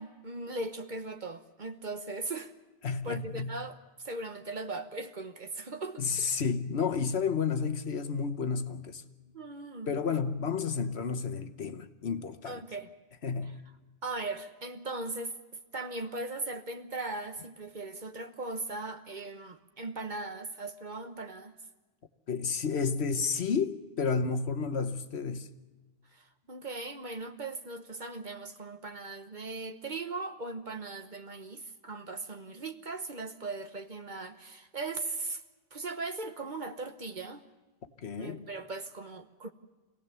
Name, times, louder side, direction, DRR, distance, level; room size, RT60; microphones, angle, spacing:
voice 1, 0.0-2.5 3.0-6.4 9.3-10.0 12.5-12.9 14.0-15.4 15.7-21.5 26.1-35.4 35.7-37.4 38.2-39.5, right 3 dB, 45° right, 1.1 m, -39 dB
voice 2, 2.8-3.6 6.0-9.0 9.9-12.6 13.2-13.6 22.3-25.5 38.0-38.5, left 5 dB, 65° left, 1.3 m, -31 dB
26.0 x 17.5 x 6.9 m
omnidirectional pair, 1.2 m